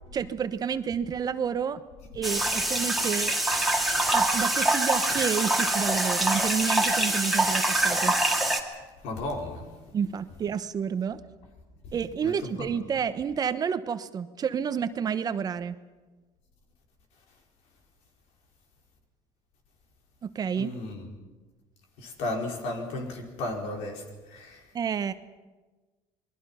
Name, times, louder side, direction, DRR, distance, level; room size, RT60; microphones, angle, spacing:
voice 1, 0.1-1.8 2.1-3.3 4.1-8.1 9.9-11.2 11.9-15.7 20.2-20.7 24.7-25.1, right 7 dB, 35° right, 12 dB, 1.0 m, -29 dB
sound 1, 2.2-8.6, right 1 dB, ahead, 2.5 m, -25 dB
voice 2, 9.0-9.7 12.2-12.3 12.6-12.8 20.6-21.1 22.0-24.6, left 2 dB, 75° left, 2 dB, 4.7 m, -34 dB
27.5 x 21.5 x 5.7 m, 1.2 s
cardioid pair, 120°, 11 cm